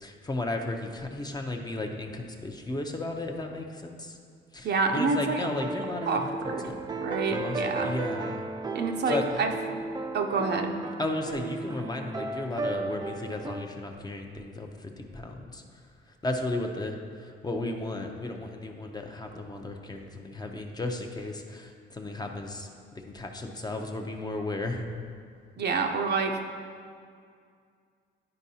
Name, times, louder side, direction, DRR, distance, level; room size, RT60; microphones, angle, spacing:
voice 1, 0.0-4.1 4.5-6.8 7.3-8.4 9.1-9.4 11.0-15.6 16.2-22.7 23.1-24.9, left 2 dB, 20° left, 3 dB, 0.7 m, -34 dB
voice 2, 4.6-5.4 6.1-6.7 7.0-7.9 8.7-9.5 10.1-10.8 25.6-26.4, right 4 dB, 55° right, 4 dB, 0.7 m, -28 dB
sound 1, 5.6-13.6, right 3 dB, 20° right, 0.4 m, -34 dB
10.5 x 4.6 x 2.8 m, 2.2 s
cardioid pair, 90°, 20 cm